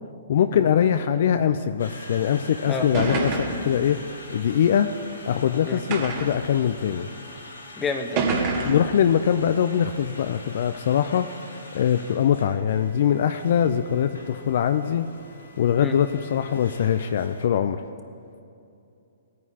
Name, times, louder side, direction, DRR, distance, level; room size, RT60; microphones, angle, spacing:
voice 1, 0.3-4.0 4.3-4.9 5.3-7.1 8.6-11.3 11.7-15.1 15.6-17.8, left 9 dB, 60° left, 9 dB, 0.4 m, -22 dB
Conversation, 1.8-17.5, left 2 dB, 85° left, 2.2 m, -44 dB
sound 1, 2.9-3.7 4.6-4.7 5.9-6.4 7.3-7.4 8.2-8.9, right 4 dB, 40° right, 1.9 m, -26 dB
voice 2, 7.8-8.2 15.8-15.9, left 4 dB, 15° left, 5 dB, 1.0 m, -29 dB
18.5 x 9.3 x 2.9 m, 2.6 s
hypercardioid pair, 130°, 0 cm